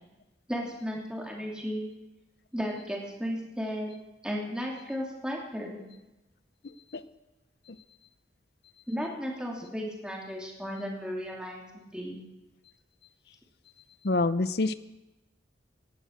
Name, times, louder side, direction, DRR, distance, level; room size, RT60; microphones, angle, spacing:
voice 1, 0.5-1.9 2.5-3.9 4.2-5.8 8.9-12.2, equal, 5° right, -2 dB, 2.8 m, -34 dB
voice 2, 6.6-7.0 7.7-7.8 14.0-14.7, left 2 dB, 60° left, 14 dB, 0.6 m, -27 dB
17.5 x 11.0 x 6.6 m, 0.99 s
head